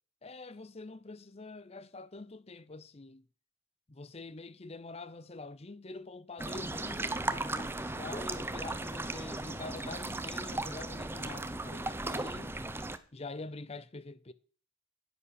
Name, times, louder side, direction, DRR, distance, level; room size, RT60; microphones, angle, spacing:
voice 1, 0.2-3.3 3.9-12.6 13.1-14.3, left 3 dB, 30° left, 0.7 m, -45 dB
sound 1, 6.4-13.0, right 2 dB, 10° right, 0.6 m, -36 dB
10.5 x 10.0 x 6.4 m
head